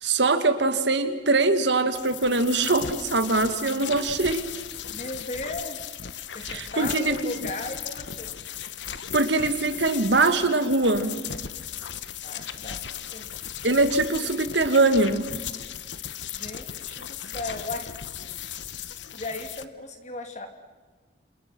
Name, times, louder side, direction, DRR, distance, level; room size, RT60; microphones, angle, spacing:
voice 1, 0.0-4.4 6.5-7.1 9.1-11.1 13.6-15.3, right 3 dB, 75° right, 10 dB, 1.9 m, -22 dB
sound 1, 1.9-19.6, left 9 dB, 85° left, 1.1 m, -37 dB
voice 2, 4.9-6.0 6.3-8.4 12.0-13.3 16.2-17.9 19.1-20.5, left 2 dB, 40° left, 5 dB, 3.0 m, -36 dB
28.5 x 28.0 x 6.1 m, 1.4 s
head